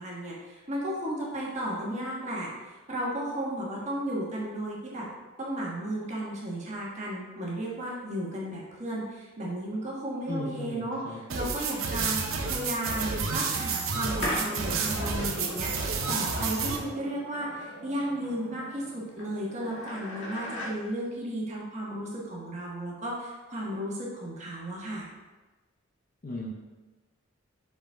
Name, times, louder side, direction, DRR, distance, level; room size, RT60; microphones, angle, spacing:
voice 1, 0.0-5.1 5.4-25.1, right 1 dB, 35° right, -4 dB, 1.3 m, -34 dB
voice 2, 10.3-11.2 26.2-26.5, left 1 dB, 45° left, -1 dB, 0.7 m, -36 dB
sound 1, 11.3-16.8, right 5 dB, 90° right, 0.8 m, -30 dB
sound 2, 14.2-20.7, equal, 60° left, 2.0 m, -39 dB
5.9 x 5.3 x 3.5 m, 1.2 s
head